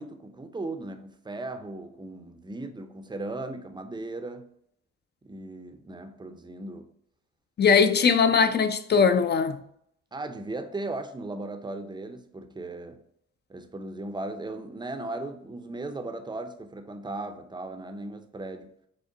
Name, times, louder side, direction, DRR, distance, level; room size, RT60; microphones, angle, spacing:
voice 1, 0.0-4.5 5.2-6.9 10.1-13.0 13.5-18.7, right 2 dB, 15° right, 0.5 m, -37 dB
voice 2, 7.6-9.6, left 6 dB, 35° left, 0.4 m, -20 dB
5.3 x 2.1 x 3.7 m
cardioid pair, 90°, 30 cm